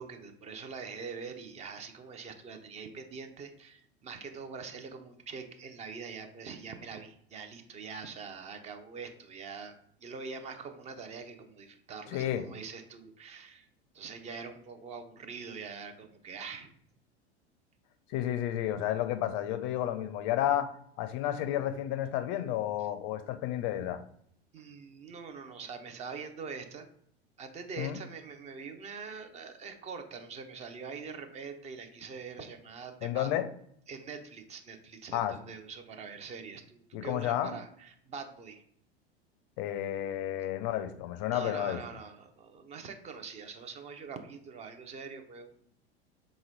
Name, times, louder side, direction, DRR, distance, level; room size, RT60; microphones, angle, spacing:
voice 1, 0.0-9.7 10.0-13.7 13.9-16.7 24.5-26.9 27.4-33.3 33.9-38.6 41.3-45.5, right 5 dB, 20° right, 7 dB, 0.5 m, -44 dB
voice 2, 12.1-12.4 18.1-24.0 27.8-28.0 33.0-33.5 35.1-35.3 36.9-37.5 39.6-41.8, left 12 dB, 35° left, 11 dB, 0.5 m, -31 dB
3.7 x 3.0 x 4.0 m, 0.66 s
figure-of-eight pair, 80°, 32 cm